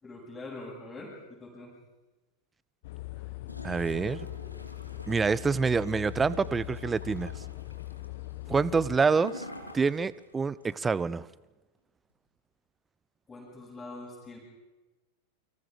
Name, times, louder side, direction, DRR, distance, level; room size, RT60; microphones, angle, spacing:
voice 1, 0.0-1.7 13.3-14.4, left 2 dB, 10° left, 7.9 m, -43 dB
sound 1, 2.8-9.0, left 18 dB, 50° left, 1.4 m, -41 dB
Gurgling / Toilet flush, 3.5-10.3 10.6-10.7, left 1 dB, 85° left, 3.0 m, -46 dB
voice 2, 3.6-4.3 5.1-7.3 8.5-9.4 9.7-11.3, right 5 dB, 15° right, 0.7 m, -27 dB
29.5 x 25.5 x 5.0 m
figure-of-eight pair, 90°, 0 cm